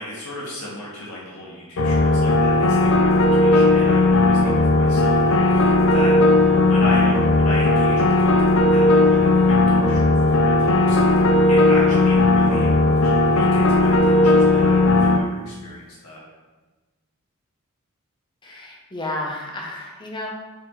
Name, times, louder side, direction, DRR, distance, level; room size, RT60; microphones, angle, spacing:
voice 1, 0.0-6.1 6.7-12.8 13.0-16.2, left 1 dB, 90° left, -6 dB, 1.6 m, -35 dB
sound 1, 1.8-15.2, left 2 dB, 60° left, 0.5 m, -16 dB
voice 2, 18.4-20.3, left 1 dB, 20° left, -1 dB, 0.9 m, -32 dB
4.8 x 4.7 x 4.4 m, 1.2 s
head